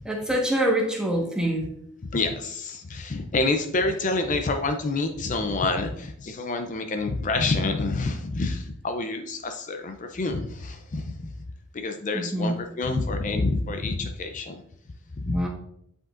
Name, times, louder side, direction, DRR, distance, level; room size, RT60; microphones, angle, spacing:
voice 1, 0.0-1.7 12.1-12.5 13.1-13.2 15.3-15.5, right 1 dB, 5° right, -1 dB, 1.3 m, -25 dB
voice 2, 2.1-11.3 11.7-14.6 15.2-15.4, left 3 dB, 35° left, 6 dB, 0.5 m, -27 dB
8.5 x 5.1 x 2.5 m, 0.70 s
head